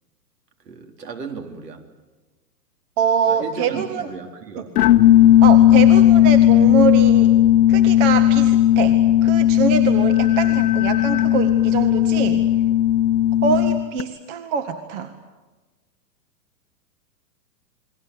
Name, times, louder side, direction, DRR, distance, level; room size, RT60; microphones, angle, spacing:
voice 1, 0.7-1.8 3.3-4.7, right 5 dB, 70° right, 4 dB, 4.0 m, -35 dB
voice 2, 3.0-4.1 5.4-7.3 7.7-9.0 9.2-12.5 13.4-15.1, right 7 dB, 45° right, 8 dB, 1.9 m, -24 dB
sound 1, 4.8-14.0, left 12 dB, 60° left, 1.3 m, -15 dB
29.5 x 21.5 x 8.2 m, 1.2 s
hypercardioid pair, 115°, 50 cm